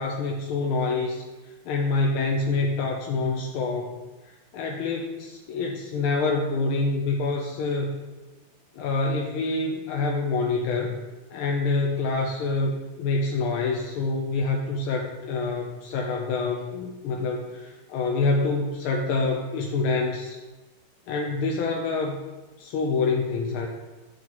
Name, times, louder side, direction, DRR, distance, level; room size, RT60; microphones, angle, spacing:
voice 1, 0.0-4.0 4.2-7.9 8.7-11.0 11.3-20.4 21.1-22.2 22.6-23.7, left 3 dB, 75° left, 0 dB, 1.5 m, -26 dB
7.9 x 7.3 x 3.0 m, 1.2 s
omnidirectional pair, 2.4 m